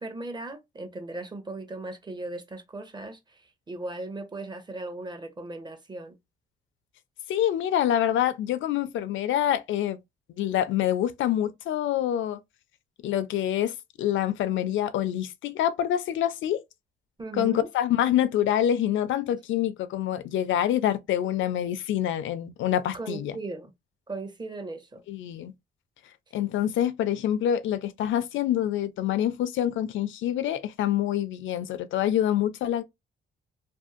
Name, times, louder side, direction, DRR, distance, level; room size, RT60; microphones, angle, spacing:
voice 1, 0.0-3.4 3.7-6.1 17.2-17.7 22.9-23.7 24.1-25.0, right 2 dB, 20° right, 0.8 m, -37 dB
voice 2, 7.3-10.0 10.4-12.4 13.0-16.6 17.3-23.4 25.1-25.5 26.3-32.8, left 11 dB, 75° left, 0.5 m, -26 dB
2.6 x 2.5 x 2.4 m
cardioid pair, 90°, 20 cm